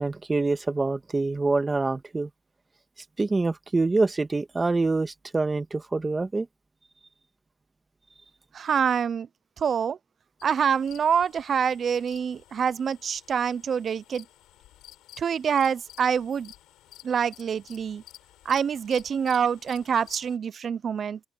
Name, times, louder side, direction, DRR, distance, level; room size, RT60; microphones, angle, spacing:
voice 1, 0.0-2.3 3.2-6.5, right 3 dB, 25° right, 1.6 m, -25 dB
voice 2, 8.5-9.3 9.6-10.0 10.4-14.2 15.2-16.5 17.0-18.0 18.5-21.2, right 7 dB, 50° right, 0.5 m, -26 dB
sound 1, 10.4-20.4, left 14 dB, 90° left, 7.5 m, -53 dB
open air
cardioid pair, 90°, 0 cm